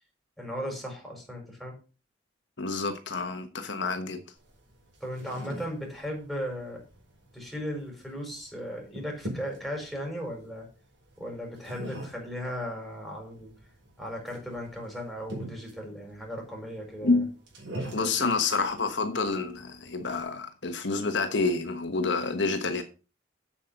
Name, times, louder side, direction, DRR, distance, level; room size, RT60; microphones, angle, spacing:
voice 1, 0.4-1.7 5.0-6.8 7.3-10.7 11.2-13.5 14.0-17.2 18.0-18.3, equal, ahead, 4.9 m, -37 dB
voice 2, 2.6-4.2 17.0-17.3 17.9-22.8, left 3 dB, 70° left, 1.2 m, -28 dB
sound 1, 4.4-20.2, right 1 dB, 75° right, 5.1 m, -44 dB
8.4 x 7.4 x 5.2 m
head